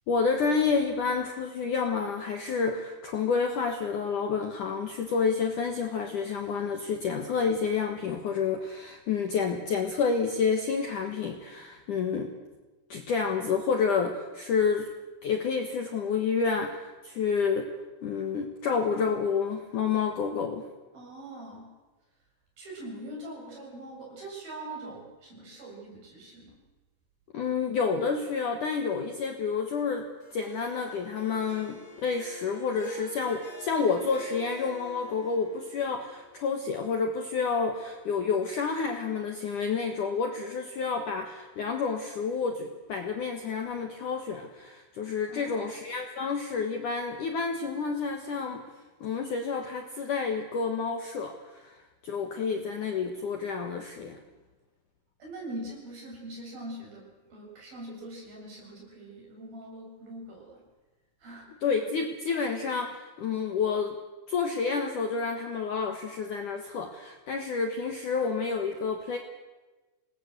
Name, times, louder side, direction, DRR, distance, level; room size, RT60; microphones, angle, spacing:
voice 1, 0.1-12.3 12.9-14.9 15.2-17.7 18.0-20.7 27.3-48.7 49.0-51.8 52.0-54.2 61.6-64.0 64.3-69.2, left 5 dB, 60° left, 4 dB, 2.3 m, -29 dB
voice 2, 20.9-21.7 22.6-26.6 45.3-45.7 55.2-60.6 61.2-61.5, right 1 dB, 50° right, -2 dB, 9.6 m, -42 dB
Harp, 30.2-36.6, right 1 dB, 40° left, 6.2 m, -46 dB
27.5 x 19.5 x 8.1 m, 1.2 s
omnidirectional pair, 5.4 m